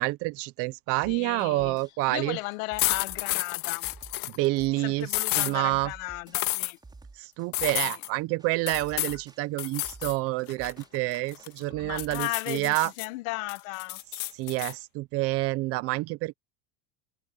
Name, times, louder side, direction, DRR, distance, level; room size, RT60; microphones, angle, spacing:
voice 1, 0.0-2.4 4.4-5.1 5.4-5.9 7.2-12.9 14.4-16.3, right 20 dB, 35° right, 0.4 m, -28 dB
voice 2, 1.0-1.8 2.1-3.9 4.8-6.8 7.8-8.0 11.6-14.0, left 23 dB, 65° left, 1.2 m, -36 dB
sound 1, 1.0-13.0, right 3 dB, 10° right, 4.9 m, -51 dB
sound 2, 2.8-4.4 5.1-5.5 6.3-6.7 7.5-8.1 8.7-9.2 9.6-10.2 10.5-11.6 12.0-13.1 13.5-14.7, left 20 dB, 50° left, 1.6 m, -30 dB
cardioid pair, 165°, 43 cm